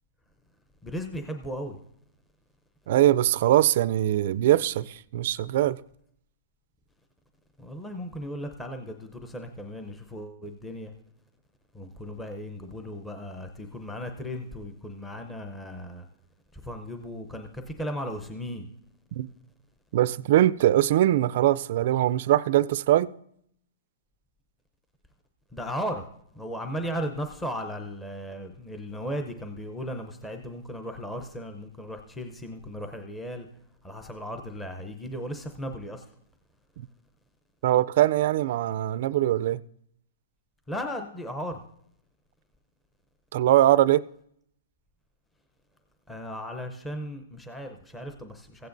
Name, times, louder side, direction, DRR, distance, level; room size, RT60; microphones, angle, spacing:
voice 1, 0.8-1.8 7.6-10.9 11.7-16.1 16.5-18.7 25.5-26.1 26.3-33.5 33.8-36.1 40.7-41.6 46.1-48.7, equal, 10° left, 0.7 m, -36 dB
voice 2, 2.9-5.8 19.1-19.3 19.9-23.1 36.8-36.9 37.6-39.6 43.3-44.0, right 13 dB, 55° right, 0.3 m, -22 dB
15.5 x 9.4 x 2.6 m
hypercardioid pair, 150°, 0 cm